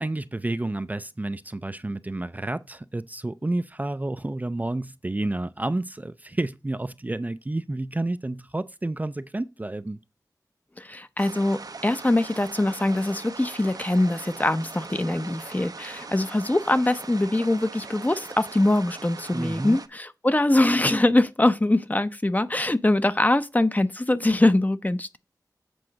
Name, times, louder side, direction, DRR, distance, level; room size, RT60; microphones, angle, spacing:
voice 1, 0.0-10.0 19.3-19.8, right 2 dB, 25° right, 0.4 m, -30 dB
voice 2, 10.8-25.2, left 1 dB, 25° left, 0.7 m, -23 dB
sound 1, 11.2-19.9, right 4 dB, 65° right, 0.7 m, -41 dB
7.9 x 3.8 x 6.2 m
wide cardioid pair, 75°, 7 cm